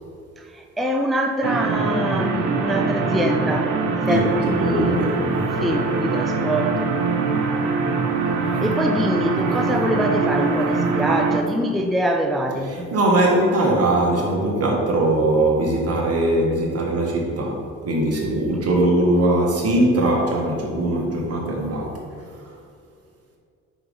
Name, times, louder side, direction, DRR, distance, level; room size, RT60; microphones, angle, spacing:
voice 1, 0.4-5.0 5.6-6.9 8.4-12.7, equal, ahead, 3 dB, 0.4 m, -24 dB
sound 1, 1.4-11.4, right 4 dB, 85° right, 0.8 m, -23 dB
voice 2, 4.1-5.6 12.6-22.6, right 1 dB, 55° right, -1 dB, 1.6 m, -21 dB
5.1 x 4.4 x 5.4 m, 2.3 s
cardioid pair, 90°, 30 cm